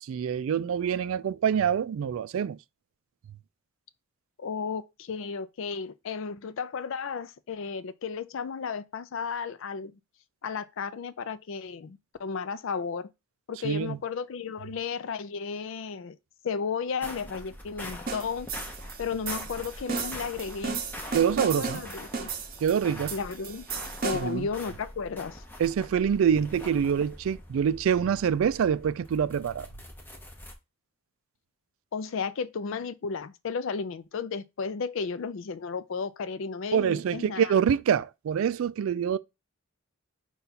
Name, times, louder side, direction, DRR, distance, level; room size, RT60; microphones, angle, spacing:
voice 1, 0.0-2.6 13.6-14.0 21.1-21.8 22.6-23.1 24.1-24.5 25.6-29.7 36.7-39.2, right 8 dB, 70° right, 0.3 m, -26 dB
voice 2, 4.4-10.0 10.4-13.1 13.5-16.2 16.4-18.5 19.0-20.8 21.3-22.3 23.1-23.7 24.0-25.4 31.9-37.5, left 5 dB, 60° left, 0.4 m, -34 dB
sound 1, 17.0-30.5, left 1 dB, 10° left, 0.6 m, -44 dB
sound 2, 18.1-24.4, right 5 dB, 40° right, 0.7 m, -35 dB
5.6 x 2.4 x 4.0 m
head